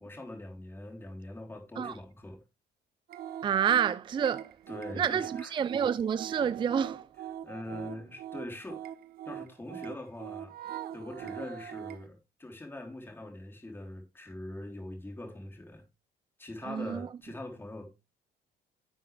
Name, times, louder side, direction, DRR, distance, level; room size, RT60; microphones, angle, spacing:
voice 1, 0.0-2.4 4.7-5.5 7.4-8.8 9.3-10.5 10.9-15.8 16.4-17.9, left 1 dB, 15° left, 3.6 m, -42 dB
sound 1, 3.1-12.1, right 10 dB, 65° right, 0.9 m, -42 dB
voice 2, 3.4-4.6 4.9-7.1 16.6-17.1, right 8 dB, 30° right, 0.4 m, -29 dB
11.5 x 7.6 x 3.3 m
cardioid pair, 110°, 17 cm